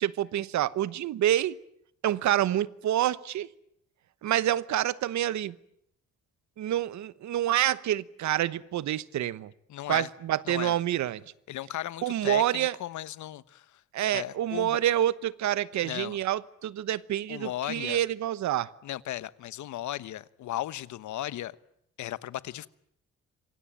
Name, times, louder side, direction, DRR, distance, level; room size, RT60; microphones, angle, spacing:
voice 1, 0.0-1.6 2.0-3.5 4.2-5.5 6.6-9.5 9.9-11.2 12.0-12.8 13.9-18.7, right 12 dB, 75° right, 1.1 m, -27 dB
voice 2, 9.7-10.1 10.4-10.7 11.5-13.8 14.1-14.8 15.8-16.2 17.3-18.0 18.8-21.6 22.0-22.7, left 13 dB, 80° left, 1.1 m, -36 dB
27.5 x 24.0 x 9.0 m
cardioid pair, 155°, 29 cm